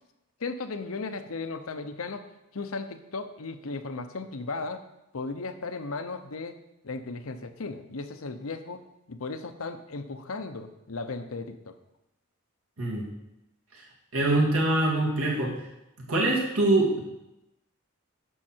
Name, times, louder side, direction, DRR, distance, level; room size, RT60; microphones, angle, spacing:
voice 1, 0.4-2.3 2.5-4.8 5.1-6.6 6.8-8.8 9.1-11.7, left 3 dB, 75° left, 9 dB, 0.8 m, -36 dB
voice 2, 14.1-15.5 16.0-17.0, right 2 dB, 80° right, -2 dB, 2.5 m, -24 dB
11.0 x 6.6 x 4.5 m, 0.91 s
head